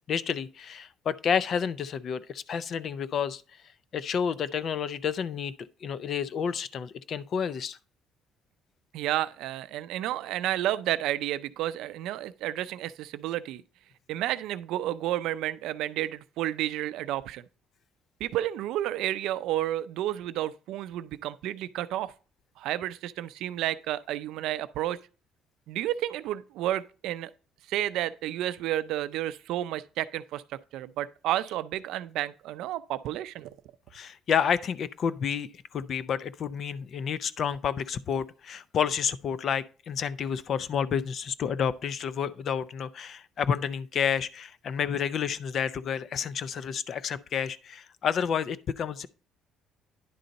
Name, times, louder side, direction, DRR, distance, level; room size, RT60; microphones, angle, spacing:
voice 1, 0.1-3.4 3.9-5.5 5.8-7.8 33.9-49.1, left 7 dB, 50° left, 0.5 m, -30 dB
voice 2, 8.9-13.6 14.1-17.4 18.2-22.1 22.6-25.0 25.7-27.3 27.7-30.4 30.7-33.5, right 13 dB, 80° right, 0.4 m, -31 dB
10.0 x 3.9 x 5.2 m
cardioid pair, 115°, 0 cm